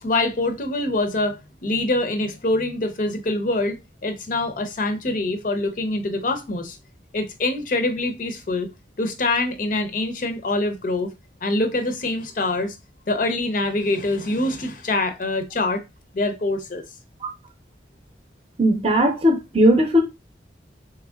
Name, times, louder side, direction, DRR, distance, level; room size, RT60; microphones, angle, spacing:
voice 1, 0.0-6.8 7.1-8.7 9.0-11.1 11.4-12.8 13.1-15.8 16.1-16.8, left 2 dB, 45° left, 0.5 m, -24 dB
voice 2, 18.6-20.0, equal, 30° right, 0.7 m, -18 dB
3.4 x 3.2 x 2.3 m
head